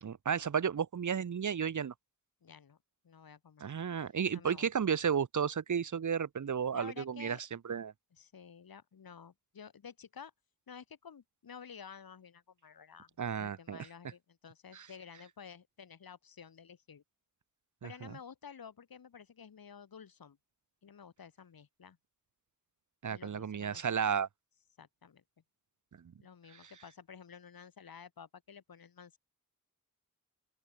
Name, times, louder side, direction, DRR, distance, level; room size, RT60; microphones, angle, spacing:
voice 1, 0.0-1.9 3.6-7.4 7.7-7.9 13.2-13.9 14.7-14.9 17.8-18.1 23.0-24.3, right 7 dB, 60° right, 1.0 m, -33 dB
voice 2, 2.4-2.8 3.0-3.7 4.3-4.7 6.7-7.4 8.1-10.3 10.7-13.1 13.4-17.0 17.8-20.4 20.8-22.0 23.1-23.9 24.8-25.2 26.2-29.2, left 7 dB, 85° left, 3.1 m, -52 dB
open air
wide cardioid pair, 120°, 35 cm